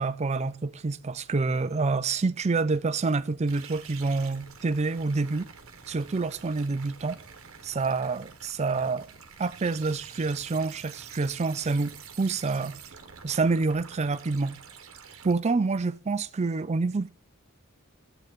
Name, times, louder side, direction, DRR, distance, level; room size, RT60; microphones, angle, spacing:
voice 1, 0.0-5.5 5.9-7.2 7.6-9.1 9.4-12.8 13.2-14.5 15.2-17.1, right 3 dB, 30° right, 0.4 m, -27 dB
sound 1, 3.5-15.3, right 6 dB, 65° right, 1.1 m, -47 dB
11.5 x 8.0 x 3.6 m
head